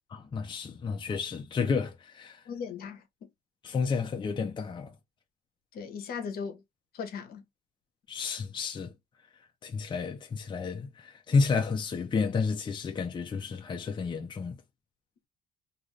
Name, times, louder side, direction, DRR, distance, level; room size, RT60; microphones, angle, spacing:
voice 1, 0.1-2.4 3.6-4.9 8.1-8.9 9.6-14.6, left 5 dB, 30° left, 0.6 m, -31 dB
voice 2, 2.5-3.0 5.7-6.6 6.9-7.4, left 6 dB, 65° left, 0.9 m, -37 dB
2.5 x 2.5 x 3.2 m
cardioid pair, 110°, 17 cm